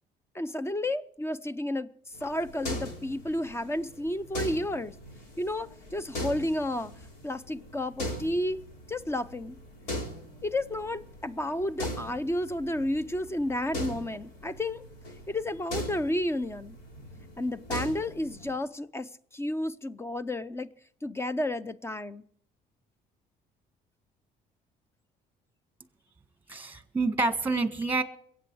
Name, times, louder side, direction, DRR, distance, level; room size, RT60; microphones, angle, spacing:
voice 1, 0.3-1.9 2.2-4.9 5.4-6.9 7.2-8.6 8.9-9.6 10.4-14.8 15.3-16.8 17.4-20.7 21.0-22.2, left 1 dB, 15° left, 0.5 m, -31 dB
sound 1, 2.1-18.5, left 1 dB, 90° left, 3.4 m, -40 dB
voice 2, 26.5-28.0, right 3 dB, 10° right, 1.4 m, -28 dB
22.5 x 8.5 x 4.6 m
cardioid pair, 110°, 17 cm